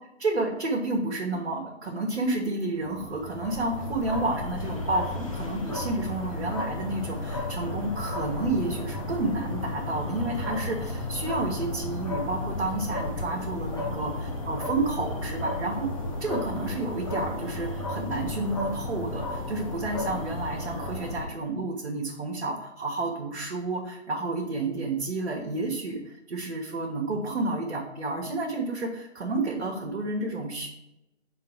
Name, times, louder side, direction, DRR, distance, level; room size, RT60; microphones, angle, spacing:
voice 1, 0.2-15.9 16.2-30.7, right 2 dB, 60° right, -2 dB, 1.1 m, -30 dB
sound 1, 2.7-21.2, left 2 dB, 30° left, 0.7 m, -33 dB
5.6 x 3.8 x 4.7 m, 0.88 s
figure-of-eight pair, 155°, 36 cm